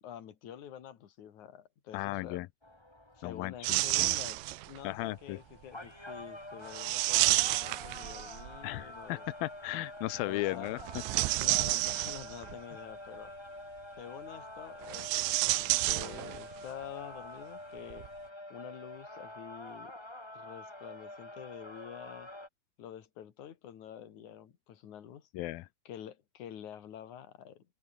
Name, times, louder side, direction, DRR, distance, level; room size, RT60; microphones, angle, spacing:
voice 1, 0.0-2.4 3.2-9.2 10.2-10.8 11.2-13.5 14.0-18.1 18.5-19.9 20.3-22.3 22.8-25.3 25.8-27.6, left 10 dB, 50° left, 3.0 m, -47 dB
voice 2, 1.9-2.5 3.2-4.1 4.8-5.4 8.6-10.8 11.2-11.4 25.3-25.7, left 18 dB, 80° left, 2.1 m, -36 dB
sound 1, 2.6-22.5, left 1 dB, 10° left, 1.9 m, -47 dB
sound 2, 3.6-4.8 6.7-8.6 10.8-12.5 14.8-16.6 16.8-16.9 17.9-18.1, right 21 dB, 80° right, 2.9 m, -30 dB
open air
omnidirectional pair, 5.2 m